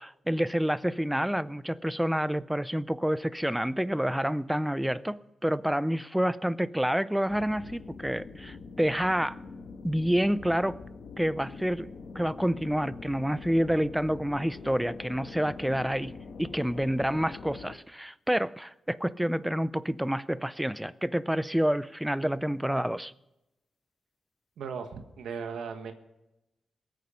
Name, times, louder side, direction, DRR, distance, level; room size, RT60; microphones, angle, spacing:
voice 1, 0.0-9.4 9.8-10.8 11.2-11.9 12.1-16.1 16.4-23.1, equal, 5° right, 0.5 m, -28 dB
sound 1, 7.3-17.8, left 4 dB, 65° left, 1.5 m, -44 dB
voice 2, 24.6-25.9, right 6 dB, 90° right, 1.5 m, -37 dB
22.0 x 9.4 x 5.1 m
cardioid pair, 110°, 0 cm